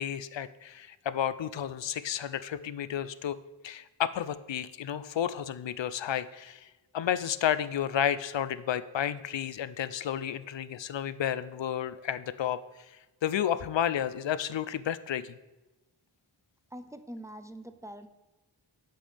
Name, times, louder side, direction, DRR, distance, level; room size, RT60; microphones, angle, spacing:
voice 1, 0.0-3.4 3.6-6.7 6.9-12.6 13.2-15.4, left 9 dB, 70° left, 14 dB, 0.6 m, -31 dB
voice 2, 16.7-18.1, right 1 dB, 5° right, 10 dB, 0.7 m, -44 dB
11.5 x 7.6 x 3.5 m, 1.1 s
wide cardioid pair, 50°, 47 cm